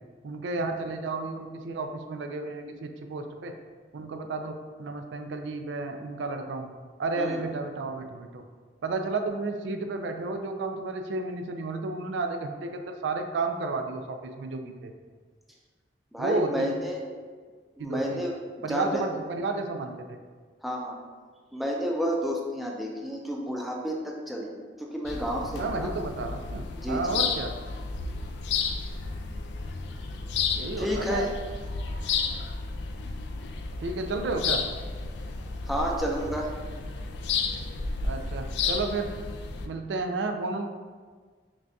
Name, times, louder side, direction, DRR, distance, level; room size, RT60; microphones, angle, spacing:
voice 1, 0.2-3.5 3.9-6.7 7.0-8.4 8.8-14.9 16.2-16.6 17.8-18.2 18.6-20.2 25.5-27.5 30.5-31.3 33.8-34.6 38.0-39.1 39.7-40.7, right 3 dB, 90° right, 5 dB, 0.4 m, -32 dB
voice 2, 16.1-17.0 17.8-18.3 18.7-19.1 20.6-21.0 21.5-25.9 26.8-27.2 30.8-31.3 35.7-36.5, equal, ahead, -2 dB, 0.4 m, -30 dB
sound 1, 25.0-39.7, left 5 dB, 75° left, 0.3 m, -32 dB
5.9 x 2.2 x 2.6 m, 1.5 s
head